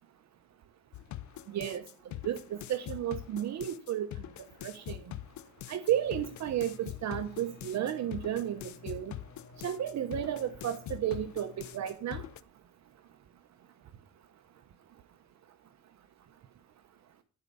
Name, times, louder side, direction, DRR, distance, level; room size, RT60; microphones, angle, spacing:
sound 1, 0.9-12.4, left 13 dB, 70° left, 0.7 m, -43 dB
voice 1, 1.5-1.8 2.2-4.1 4.6-5.0 5.7-9.1 9.6-12.2, right 11 dB, 65° right, 10 dB, 0.9 m, -33 dB
sound 2, 5.8-11.9, left 5 dB, 35° left, 1.7 m, -55 dB
12.0 x 5.3 x 6.7 m, 0.41 s
cardioid pair, 90°, 30 cm